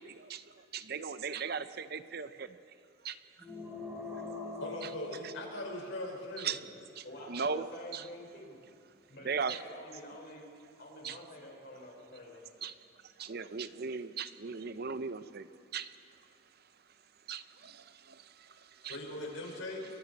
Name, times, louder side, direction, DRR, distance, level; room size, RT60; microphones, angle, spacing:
voice 1, 0.0-2.6 3.0-3.2 4.8-4.9 5.2-5.3 6.4-6.6 7.0-7.7 7.9-8.0 9.2-9.6 11.0-11.2 12.6-12.7 13.0-16.0 17.3-19.0, right 5 dB, 50° right, 12 dB, 0.6 m, -38 dB
sound 1, 3.4-6.0, left 3 dB, 10° right, 4.1 m, -43 dB
voice 2, 4.6-6.6 18.5-19.9, left 1 dB, 75° left, 0 dB, 5.1 m, -40 dB
voice 3, 7.0-8.6 9.1-10.4 10.8-12.4, left 1 dB, 50° left, -1 dB, 4.7 m, -48 dB
29.0 x 23.0 x 4.1 m, 2.6 s
head